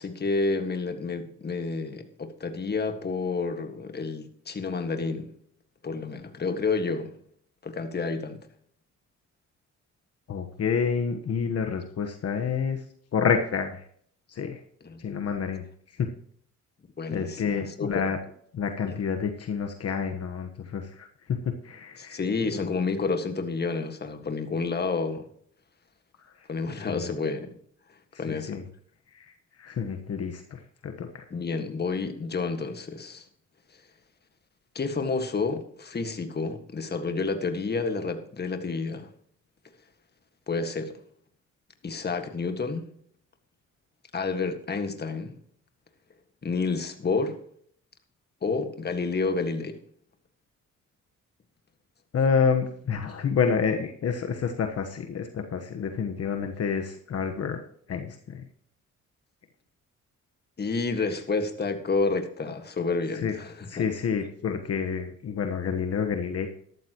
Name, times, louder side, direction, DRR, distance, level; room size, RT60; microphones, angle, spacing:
voice 1, 0.0-5.3 5.8-7.1 7.6-8.5 14.8-15.0 17.0-18.0 18.9-19.0 22.0-25.3 26.5-27.5 28.2-28.6 31.3-33.2 34.7-39.1 40.5-41.0 41.8-42.9 44.1-45.4 46.4-47.4 48.4-49.8 60.6-63.8, left 4 dB, 35° left, 1.7 m, -29 dB
voice 2, 10.3-12.8 13.1-13.8 14.3-14.6 15.0-15.6 16.0-16.1 17.1-18.2 18.5-22.2 22.5-22.7 26.9-27.1 28.3-28.6 29.1-31.2 52.1-57.6 57.9-58.4 63.2-63.3 63.7-66.5, left 6 dB, 55° left, 1.3 m, -28 dB
13.0 x 12.5 x 3.0 m
cardioid pair, 90°, 30 cm